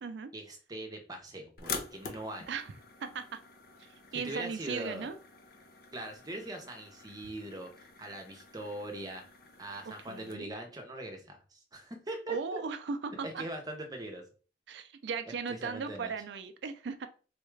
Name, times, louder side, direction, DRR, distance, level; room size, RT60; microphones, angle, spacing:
voice 1, 0.3-2.5 4.1-5.1 5.9-9.2 9.6-12.4 13.2-14.2 15.5-16.1, right 1 dB, 20° right, 2 dB, 0.7 m, -41 dB
sound 1, 1.6-10.3, left 5 dB, 55° left, 0.5 m, -46 dB
voice 2, 3.0-3.4 4.1-5.2 9.8-10.5 12.3-13.4 14.7-17.1, right 5 dB, 65° right, 9 dB, 0.4 m, -37 dB
4.0 x 2.3 x 3.2 m, 0.38 s
head